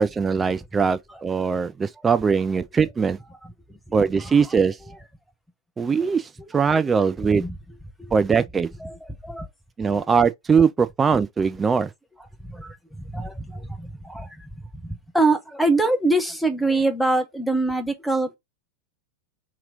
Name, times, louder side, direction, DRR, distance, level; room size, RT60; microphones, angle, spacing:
voice 1, 0.0-3.2 3.9-4.8 5.8-7.5 8.1-8.7 9.8-11.9, right 5 dB, 15° right, 0.3 m, -21 dB
voice 2, 8.8-9.5 9.9-10.1 12.4-14.5 14.8-18.4, right 2 dB, ahead, 0.8 m, -24 dB
2.9 x 2.9 x 3.8 m
figure-of-eight pair, 90°, 0 cm